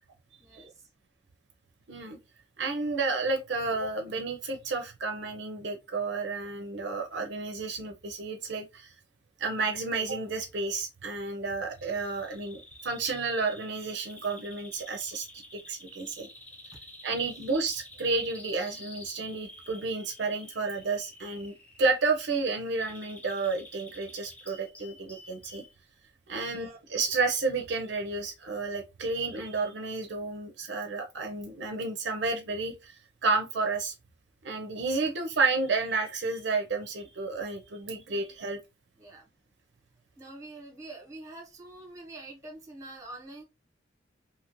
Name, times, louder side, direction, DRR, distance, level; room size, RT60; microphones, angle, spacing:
voice 1, 0.4-0.9 16.7-16.8 17.1-17.3 35.0-35.1 37.9-38.2 39.0-39.3 40.2-43.4, right 2 dB, 15° right, 1.0 m, -46 dB
voice 2, 2.6-8.9 9.4-16.3 17.0-25.6 26.3-32.9 33.2-33.9 34.4-38.6, right 3 dB, 65° right, 0.5 m, -31 dB
Bird vocalization bird call bird song, 11.7-25.7, left 1 dB, 10° left, 0.5 m, -50 dB
2.8 x 2.5 x 2.9 m
head